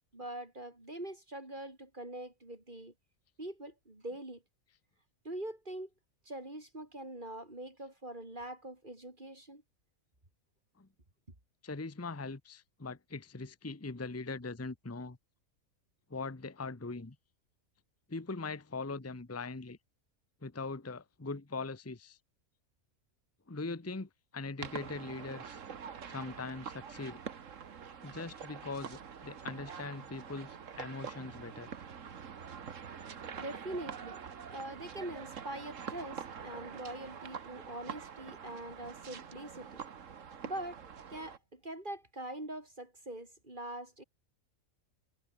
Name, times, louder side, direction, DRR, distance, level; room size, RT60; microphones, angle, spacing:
voice 1, 0.1-2.9 3.4-4.4 5.2-5.9 6.2-9.6 33.4-34.2 34.5-39.8 40.4-40.8 41.1-44.0, right 1 dB, 35° right, 4.4 m, -43 dB
voice 2, 11.6-15.2 16.1-17.2 18.1-19.8 20.4-22.2 23.5-25.6 26.0-27.2 28.0-31.7, left 3 dB, 10° left, 0.9 m, -41 dB
sound 1, 24.6-41.4, right 7 dB, 65° right, 1.7 m, -45 dB
omnidirectional pair, 1.4 m